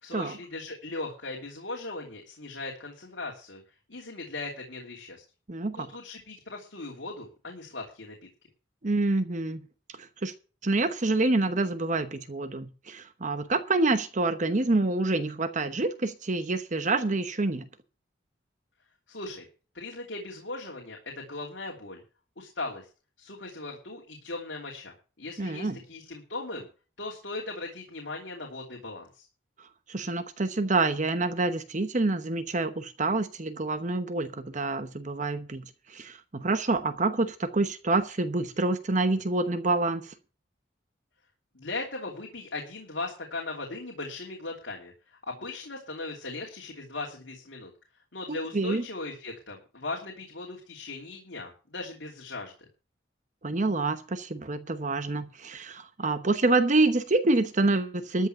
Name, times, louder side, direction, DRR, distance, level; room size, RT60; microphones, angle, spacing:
voice 1, 0.0-3.6 3.9-5.2 5.7-8.1 19.1-19.4 19.7-22.0 22.4-22.9 23.2-26.7 27.0-29.2 41.5-44.9 45.3-47.7 48.1-52.5, left 2 dB, 70° left, 3.0 m, -38 dB
voice 2, 5.5-5.9 8.8-9.6 10.0-10.3 10.6-17.7 25.4-25.8 29.6-40.1 48.3-48.8 53.4-58.3, right 2 dB, 40° right, 1.0 m, -27 dB
13.5 x 6.3 x 7.9 m
head